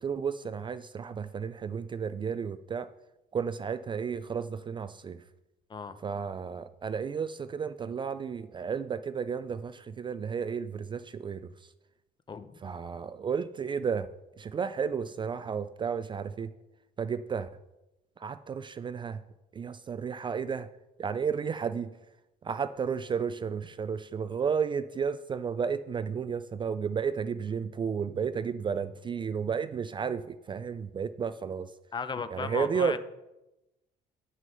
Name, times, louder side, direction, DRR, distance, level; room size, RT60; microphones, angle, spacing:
voice 1, 0.0-2.9 3.3-5.2 6.0-11.5 12.6-14.1 14.4-16.5 17.0-17.5 18.2-19.2 19.5-20.7 21.0-21.9 22.4-31.7 32.3-33.0, right 6 dB, 30° right, 13 dB, 0.3 m, -32 dB
voice 2, 12.3-12.6 31.9-33.0, left 5 dB, 25° left, 12 dB, 0.7 m, -35 dB
9.5 x 6.2 x 5.3 m, 0.95 s
cardioid pair, 110°, 17 cm